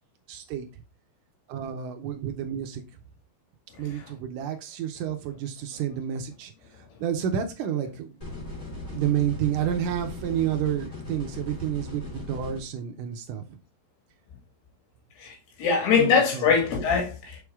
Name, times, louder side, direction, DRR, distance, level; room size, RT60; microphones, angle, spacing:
voice 1, 0.3-0.7 1.5-2.8 3.8-8.2 8.8-13.6 16.0-16.5, right 9 dB, 85° right, 1.8 m, -30 dB
sound 1, 8.2-12.6, left 2 dB, 15° left, 1.8 m, -38 dB
voice 2, 15.2-17.4, left 6 dB, 85° left, 4.2 m, -23 dB
6.9 x 4.7 x 3.5 m
omnidirectional pair, 4.6 m